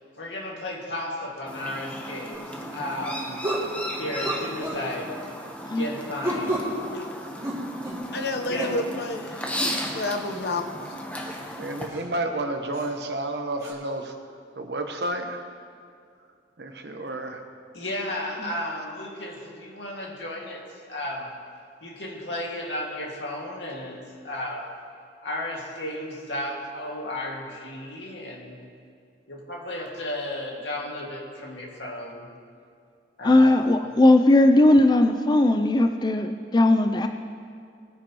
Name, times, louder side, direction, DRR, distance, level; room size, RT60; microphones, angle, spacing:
voice 1, 0.2-3.4 4.0-5.1 5.7-6.6 8.5-8.7 17.7-21.3 21.8-24.7 25.2-28.6 29.3-32.3 33.2-33.7, left 1 dB, 85° left, -1 dB, 2.1 m, -34 dB
Chirp tweet, 1.5-11.9, equal, 10° left, 1.0 m, -35 dB
sound 1, 2.3-2.5 3.4-3.7 4.2-4.8 6.2-6.7 7.4-8.0 8.6-8.8 10.4-10.5 11.2-11.4 11.9-12.0 12.7-12.9 13.6-13.7, right 1 dB, 20° right, 2.5 m, -30 dB
voice 2, 8.1-9.7 9.9-10.8, left 2 dB, 65° left, 5 dB, 0.9 m, -30 dB
voice 3, 11.6-14.1 14.6-15.4 16.6-17.4, right 2 dB, 70° right, 5 dB, 1.1 m, -30 dB
voice 4, 33.2-37.1, left 1 dB, 25° left, 6 dB, 0.4 m, -18 dB
19.5 x 9.6 x 3.0 m, 2.3 s
head